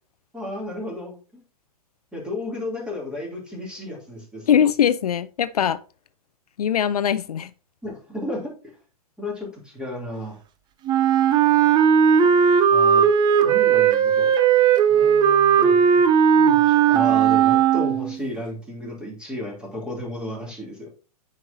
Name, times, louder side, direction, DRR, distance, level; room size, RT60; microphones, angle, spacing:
voice 1, 0.3-1.4 2.1-4.6 7.8-8.4 9.2-10.4 12.7-13.1 13.4-14.3 14.9-16.0 16.3-20.9, left 1 dB, 5° right, 2.7 m, -33 dB
voice 2, 4.5-5.8 6.6-7.5, left 9 dB, 75° left, 0.5 m, -21 dB
Wind instrument woodwind instrument, 10.9-18.2, right 8 dB, 20° right, 0.6 m, -17 dB
9.0 x 5.3 x 2.7 m
hypercardioid pair, 115°, 19 cm